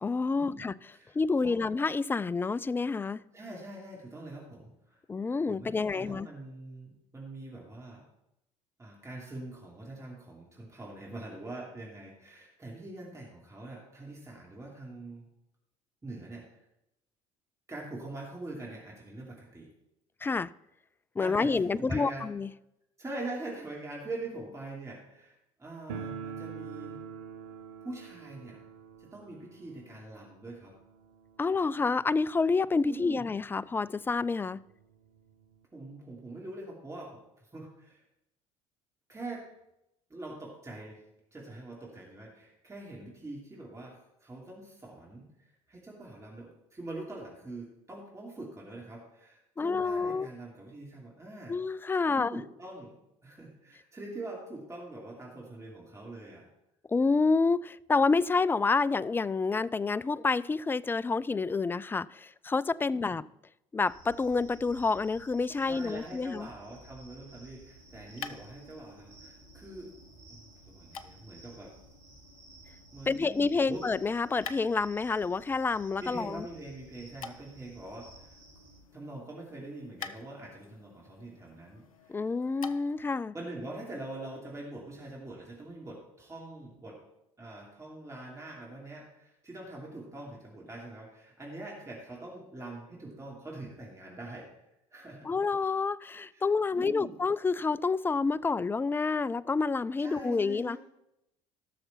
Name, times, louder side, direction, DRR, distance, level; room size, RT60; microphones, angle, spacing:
voice 1, 0.0-0.7 1.1-3.2 5.1-6.3 20.2-20.5 21.2-22.5 31.4-34.6 49.6-50.3 51.5-52.4 56.9-63.2 63.7-66.5 73.1-76.4 82.1-83.3 95.2-100.8, left 4 dB, 10° left, 0.3 m, -28 dB
voice 2, 0.9-1.6 3.3-5.0 5.5-8.0 8.8-15.3 16.0-16.4 17.7-19.7 21.2-22.3 23.0-27.0 27.8-28.6 29.0-30.7 32.8-33.3 35.7-38.0 39.1-39.5 40.1-41.0 41.3-51.5 52.1-53.0 53.2-56.5 62.9-63.2 65.6-69.9 70.3-70.4 70.7-71.7 72.9-73.8 76.0-78.4 78.9-82.3 83.3-87.0 87.4-94.5 94.9-95.3 96.3-96.5 96.7-97.1 100.0-100.8, right 2 dB, 15° right, 2.9 m, -44 dB
sound 1, 25.9-32.6 32.9-33.0 33.2-33.3 34.1-34.2 34.5-35.6, right 6 dB, 65° right, 0.8 m, -45 dB
sound 2, 63.8-78.8, right 2 dB, 45° right, 3.9 m, -55 dB
sound 3, 67.5-83.1, left 6 dB, 80° left, 0.5 m, -50 dB
17.0 x 6.5 x 4.3 m
figure-of-eight pair, 60°, 18 cm